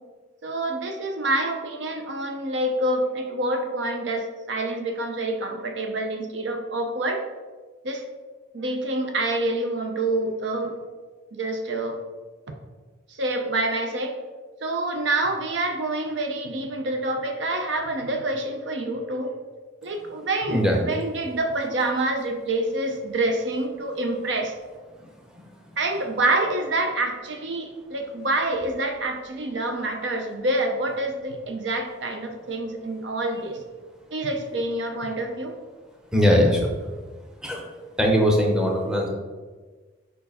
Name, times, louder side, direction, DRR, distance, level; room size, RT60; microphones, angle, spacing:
voice 1, 0.4-7.2 7.8-8.0 8.5-10.7 11.3-12.0 13.1-14.1 14.6-19.3 19.8-24.5 25.8-33.6 34.1-35.5, right 2 dB, 65° right, 4 dB, 0.6 m, -27 dB
voice 2, 20.5-20.8 25.0-25.5 36.1-36.7 37.4-37.7 38.0-39.1, equal, 5° right, -1 dB, 0.8 m, -21 dB
5.2 x 4.5 x 4.1 m, 1.4 s
head